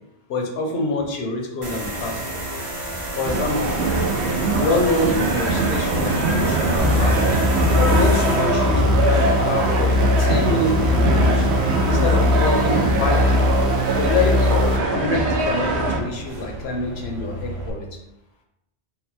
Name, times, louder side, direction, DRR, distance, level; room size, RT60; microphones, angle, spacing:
voice 1, 0.3-2.2 3.2-3.8 4.5-7.2 7.7-11.5 11.8-13.5 14.0-17.9, left 2 dB, 70° left, 1 dB, 1.0 m, -26 dB
sound 1, 1.6-17.7, right 1 dB, 35° right, 0.7 m, -31 dB
sound 2, 3.2-16.0, right 2 dB, 90° right, 0.9 m, -22 dB
sound 3, 6.8-14.8, left 2 dB, 60° right, 0.9 m, -20 dB
3.9 x 2.0 x 4.3 m, 0.84 s
omnidirectional pair, 1.1 m